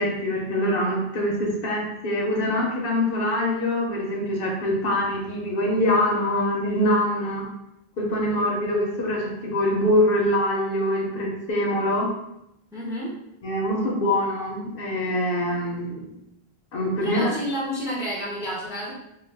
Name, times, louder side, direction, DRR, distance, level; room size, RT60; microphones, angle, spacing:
voice 1, 0.0-7.5 8.0-12.1 13.4-16.1 16.7-17.3, left 1 dB, 65° left, -2 dB, 0.8 m, -24 dB
voice 2, 12.7-13.1 17.0-18.9, equal, 5° right, -5 dB, 0.5 m, -29 dB
2.3 x 2.1 x 3.3 m, 0.84 s
omnidirectional pair, 1.1 m